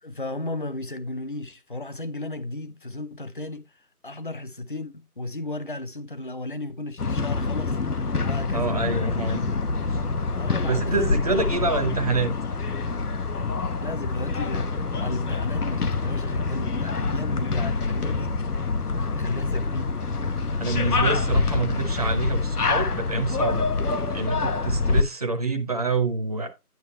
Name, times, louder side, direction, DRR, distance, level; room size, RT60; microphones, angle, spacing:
voice 1, 0.0-3.7 4.0-7.8 8.2-8.8 10.4-11.5 13.8-18.4 19.1-19.9, left 2 dB, 35° left, 0.7 m, -34 dB
sound 1, 7.0-25.0, left 4 dB, 75° left, 1.1 m, -26 dB
voice 2, 8.5-9.4 9.9-10.0 10.7-12.3 20.6-23.7 24.1-26.5, right 3 dB, 25° right, 0.8 m, -27 dB
9.3 x 7.9 x 3.1 m
figure-of-eight pair, 155°, 46 cm